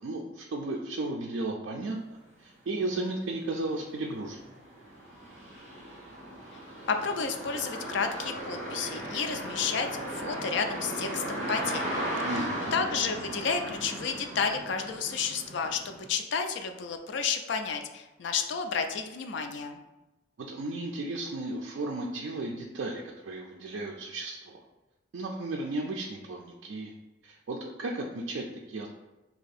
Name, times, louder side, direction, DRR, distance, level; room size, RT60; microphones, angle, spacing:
voice 1, 0.0-4.4 12.2-12.7 20.4-24.6 25.1-26.9 27.2-28.9, right 2 dB, 65° right, -1 dB, 0.4 m, -34 dB
sound 1, 2.7-2.8 3.2-16.1, right 1 dB, 40° right, 1.0 m, -37 dB
voice 2, 6.9-12.0 12.3-12.4 12.7-19.8, left 5 dB, 65° left, 6 dB, 0.4 m, -31 dB
2.8 x 2.6 x 4.0 m, 1.1 s
head